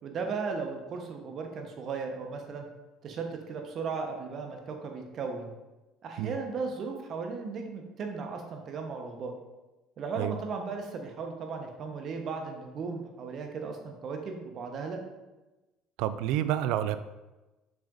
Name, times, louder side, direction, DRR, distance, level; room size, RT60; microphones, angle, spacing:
voice 1, 0.0-2.7 3.0-5.5 6.0-9.3 10.0-15.0, right 4 dB, 50° right, 3 dB, 1.2 m, -36 dB
voice 2, 16.0-17.0, right 11 dB, 70° right, 13 dB, 0.3 m, -28 dB
6.9 x 6.2 x 2.7 m, 1.1 s
hypercardioid pair, 65°, 0 cm